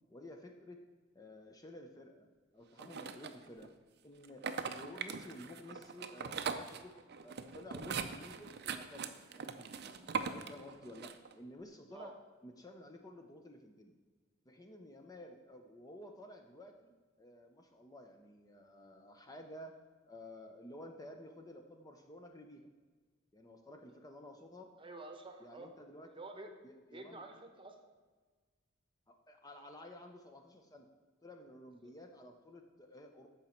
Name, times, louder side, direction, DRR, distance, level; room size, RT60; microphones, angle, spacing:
voice 1, 0.1-0.8 1.1-2.3 2.5-3.7 4.0-6.9 7.2-12.1 12.4-13.9 14.5-16.9 17.2-19.7 20.0-22.7 23.3-24.7 25.4-26.1 26.6-27.2 29.1-30.9 31.2-33.3, left 1 dB, 20° left, 4 dB, 0.6 m, -53 dB
sound 1, 2.8-3.7 4.2-11.3, right 5 dB, 55° right, 0.6 m, -41 dB
voice 2, 24.8-25.7 26.0-26.5 26.9-27.8 31.8-31.9, right 2 dB, 25° right, 5 dB, 1.0 m, -50 dB
14.0 x 5.2 x 4.4 m, 1.4 s
head